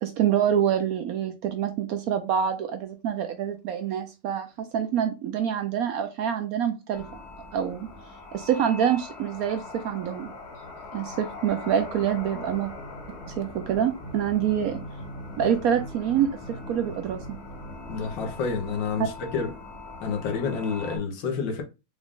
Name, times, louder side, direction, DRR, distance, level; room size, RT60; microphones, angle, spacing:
voice 1, 0.0-7.0 7.5-7.9 8.3-10.3 10.9-12.7 13.3-14.8 15.4-17.2 19.0-19.1, right 9 dB, 75° right, 0.8 m, -26 dB
sound 1, 6.9-21.0, left 2 dB, 45° left, 0.9 m, -40 dB
voice 2, 17.9-19.5 20.0-21.6, left 5 dB, 85° left, 1.6 m, -29 dB
4.9 x 2.4 x 3.6 m
omnidirectional pair, 2.0 m